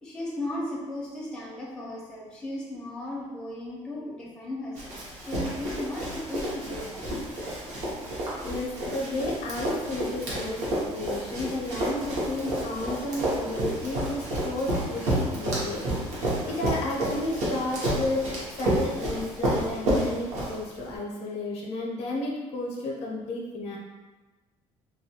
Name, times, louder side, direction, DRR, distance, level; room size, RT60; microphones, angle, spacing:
voice 1, 0.0-7.1, left 1 dB, 5° left, -6 dB, 0.4 m, -36 dB
Run, 4.8-20.9, right 1 dB, 65° right, 0.8 m, -30 dB
voice 2, 8.4-16.1 16.5-18.3 18.6-23.8, left 2 dB, 60° left, -2 dB, 0.5 m, -32 dB
2.2 x 2.2 x 2.7 m, 1.2 s
cardioid pair, 170°, 12 cm